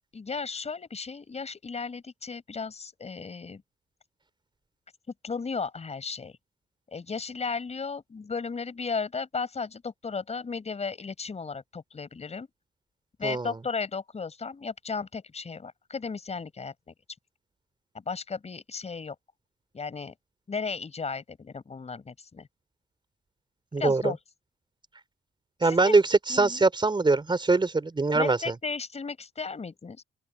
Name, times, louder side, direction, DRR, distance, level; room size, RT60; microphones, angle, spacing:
voice 1, 0.1-3.6 5.2-6.4 6.9-12.5 13.2-16.9 17.9-19.1 19.7-20.1 20.5-22.5 23.8-24.2 25.6-26.0 26.3-26.6 28.1-30.0, left 5 dB, 35° left, 5.0 m, -35 dB
voice 2, 13.2-13.5 23.7-24.1 25.6-28.6, right 3 dB, 25° right, 3.8 m, -23 dB
open air
cardioid pair, 90°, 20 cm